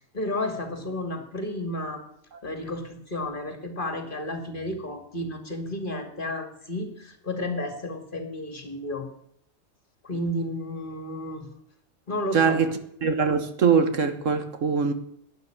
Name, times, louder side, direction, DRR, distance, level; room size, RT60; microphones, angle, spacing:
voice 1, 0.1-2.0 2.4-9.1 10.0-11.5 12.1-12.6, left 1 dB, 45° left, 2.6 m, -32 dB
voice 2, 12.3-12.7 13.0-14.9, right 5 dB, 80° right, 1.8 m, -22 dB
12.0 x 9.6 x 8.9 m
omnidirectional pair, 1.3 m